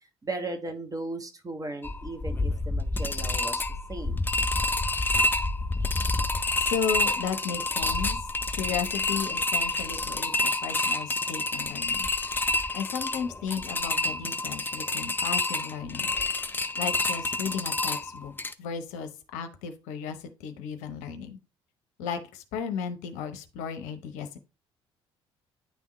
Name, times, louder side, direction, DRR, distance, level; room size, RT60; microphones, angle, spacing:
voice 1, 0.2-3.6 3.9-4.2, right 2 dB, 25° right, 6 dB, 1.2 m, -36 dB
sound 1, 1.8-18.5, left 2 dB, 15° left, 0.5 m, -28 dB
voice 2, 6.6-8.2 8.5-12.1 12.7-16.1 16.8-18.3 18.6-21.4 22.0-24.4, left 7 dB, 60° left, 8 dB, 0.7 m, -34 dB
9.2 x 3.5 x 3.0 m, 0.31 s
figure-of-eight pair, 50°, 14 cm